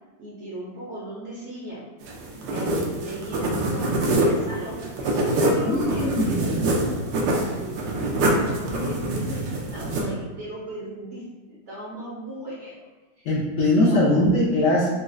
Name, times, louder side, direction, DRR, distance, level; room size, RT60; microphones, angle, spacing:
voice 1, 0.2-1.8 2.5-7.0 7.4-12.7 13.7-14.3, right 1 dB, 60° right, -6 dB, 0.7 m, -37 dB
sound 1, 2.0-10.0, right 1 dB, 90° right, 1.2 m, -25 dB
voice 2, 5.6-6.5 13.2-14.9, left 1 dB, 65° left, -6 dB, 0.8 m, -21 dB
4.0 x 2.3 x 2.5 m, 1.2 s
omnidirectional pair, 1.8 m